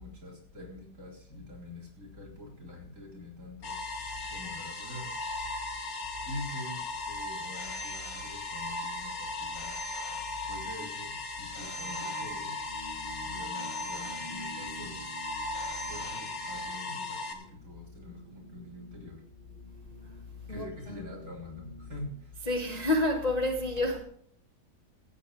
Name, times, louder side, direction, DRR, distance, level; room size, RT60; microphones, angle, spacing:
voice 1, 0.0-3.8 4.3-5.1 6.2-9.8 10.5-12.5 13.2-15.1 15.9-19.2 20.5-22.5, left 1 dB, 45° right, 4.3 m, -45 dB
sound 1, 3.6-17.3, left 2 dB, 85° left, 2.3 m, -37 dB
Telephone, 7.5-8.8 9.5-10.8 11.5-12.8 13.5-14.8 15.5-16.8, left 1 dB, 50° left, 2.1 m, -46 dB
sound 2, 11.7-22.2, right 1 dB, 30° right, 1.7 m, -51 dB
voice 2, 20.5-21.1 22.4-24.0, left 1 dB, 25° left, 1.1 m, -29 dB
15.0 x 8.5 x 5.3 m
omnidirectional pair, 1.8 m